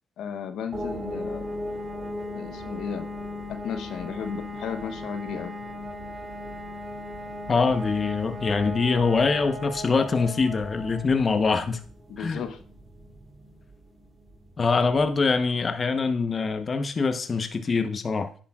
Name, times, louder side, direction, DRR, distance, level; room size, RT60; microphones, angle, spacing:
voice 1, 0.2-1.5 2.3-3.1 3.5-5.5 12.1-12.6, left 7 dB, 80° left, 8 dB, 0.9 m, -34 dB
sound 1, 0.7-15.3, left 1 dB, 30° right, 2.9 m, -37 dB
voice 2, 7.5-11.8 12.2-12.4 14.6-18.3, left 4 dB, 40° left, 7 dB, 0.9 m, -24 dB
10.0 x 10.0 x 2.4 m, 0.44 s
cardioid pair, 90°, 0 cm